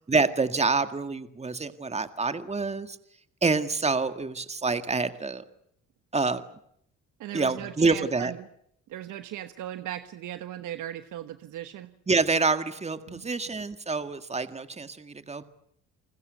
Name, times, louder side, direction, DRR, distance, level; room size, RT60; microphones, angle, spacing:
voice 1, 0.1-3.0 3.4-5.4 6.1-6.4 7.3-8.3 12.1-15.4, right 4 dB, 20° right, 10 dB, 1.9 m, -27 dB
voice 2, 7.2-8.5 8.9-11.9 13.1-13.3, right 12 dB, 85° right, 10 dB, 1.2 m, -38 dB
29.5 x 20.5 x 8.0 m, 0.70 s
cardioid pair, 90°, 30 cm